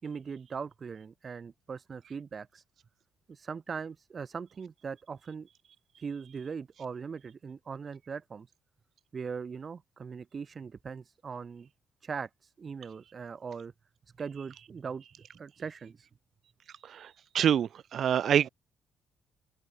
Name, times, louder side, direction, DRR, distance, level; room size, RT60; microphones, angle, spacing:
voice 1, 0.0-2.6 3.3-5.5 6.0-8.5 9.1-11.7 12.0-13.7 14.2-16.1, right 6 dB, 40° right, 4.4 m, -40 dB
voice 2, 17.3-18.5, right 9 dB, 60° right, 3.8 m, -26 dB
open air
cardioid pair, 90°, 0 cm